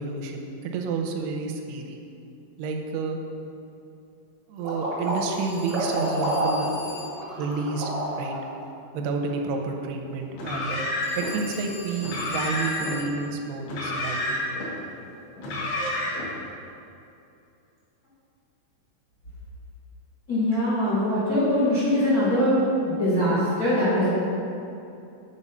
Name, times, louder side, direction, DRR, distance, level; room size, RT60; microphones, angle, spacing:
voice 1, 0.0-2.0 2.6-3.2 4.5-6.7 7.4-7.9 8.2-8.4 8.9-10.8 11.2-14.4, right 4 dB, 80° right, 3 dB, 2.4 m, -30 dB
sound 1, 4.6-8.5, right 1 dB, 60° right, 0.8 m, -28 dB
Telephone, 5.0-7.3 11.0-13.2, left 3 dB, 50° left, 1.7 m, -42 dB
Car, 10.3-11.3 12.0-13.0 13.6-14.7 15.4-16.3, left 1 dB, 70° left, 3.5 m, -29 dB
voice 2, 20.3-24.1, left 1 dB, 85° left, -10 dB, 0.8 m, -22 dB
8.6 x 4.6 x 5.5 m, 2.7 s
omnidirectional pair, 5.1 m